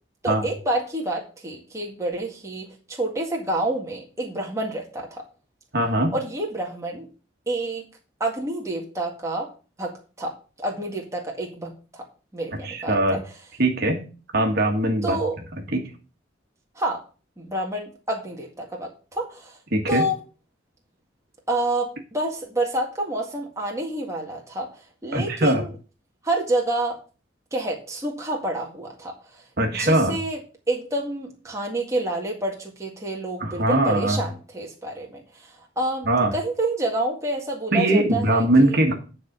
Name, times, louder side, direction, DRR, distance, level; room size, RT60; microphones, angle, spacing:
voice 1, 0.2-5.2 6.1-7.1 7.5-7.8 8.2-9.5 9.8-12.0 12.3-13.2 15.0-15.3 16.8-17.0 17.4-19.6 19.9-20.2 21.5-24.7 25.0-25.7 26.2-27.0 27.5-29.1 29.7-30.4 30.7-38.7, right 1 dB, 15° right, -1 dB, 1.9 m, -28 dB
voice 2, 5.7-6.2 12.6-13.2 13.6-14.0 14.3-15.2 15.5-15.8 19.7-20.0 25.1-25.6 29.6-30.2 33.4-34.2 36.0-36.3 37.7-38.9, right 1 dB, 55° right, 2 dB, 1.7 m, -21 dB
9.9 x 4.3 x 6.7 m, 0.35 s
head